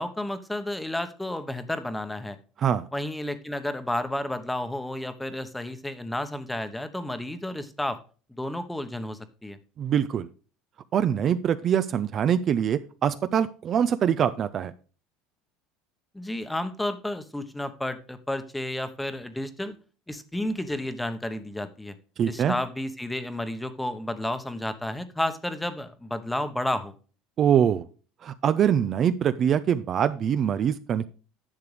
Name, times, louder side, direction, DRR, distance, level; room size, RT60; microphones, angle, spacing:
voice 1, 0.0-2.4 2.9-8.0 8.3-9.6 16.1-19.7 20.1-21.9 22.3-26.9, left 1 dB, 5° left, 10 dB, 1.0 m, -31 dB
voice 2, 9.8-10.3 10.9-14.7 22.2-22.5 27.4-27.9 28.2-31.1, right 9 dB, 40° right, 12 dB, 0.5 m, -24 dB
11.0 x 6.7 x 3.3 m, 0.37 s
supercardioid pair, 110°, 0 cm